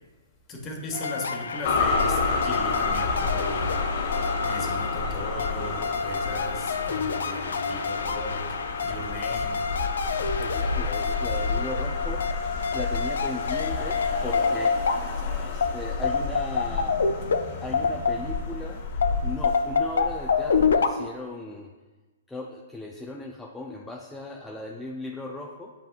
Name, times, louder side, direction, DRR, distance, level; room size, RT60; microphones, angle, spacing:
voice 1, 0.5-3.9 4.4-9.6, left 1 dB, 25° left, 1 dB, 1.3 m, -37 dB
sound 1, 0.9-18.6 19.0-20.9, left 5 dB, 75° left, 0.5 m, -28 dB
sound 2, 1.6-20.7, left 4 dB, 50° left, 1.0 m, -30 dB
voice 2, 10.3-12.3 12.7-14.8 15.4-17.0 17.6-18.8 19.2-21.7 22.3-25.7, left 1 dB, 5° left, -1 dB, 0.5 m, -37 dB
8.6 x 5.6 x 2.4 m, 1.2 s
hypercardioid pair, 135°, 0 cm